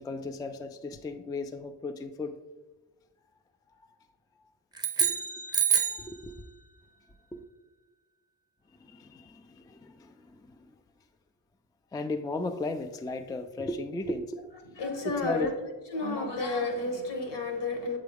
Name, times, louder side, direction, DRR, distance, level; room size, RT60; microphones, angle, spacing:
voice 1, 0.0-2.4 5.0-5.2 6.0-6.5 7.3-7.4 8.8-10.7 11.9-14.4 15.2-15.5, left 2 dB, 10° left, 0.3 m, -36 dB
sound 1, 4.7-6.1, right 7 dB, 10° right, 0.8 m, -27 dB
voice 2, 14.8-15.5 15.9-18.0, left 2 dB, 70° left, 1.4 m, -31 dB
7.4 x 3.8 x 3.5 m
supercardioid pair, 55°, 44 cm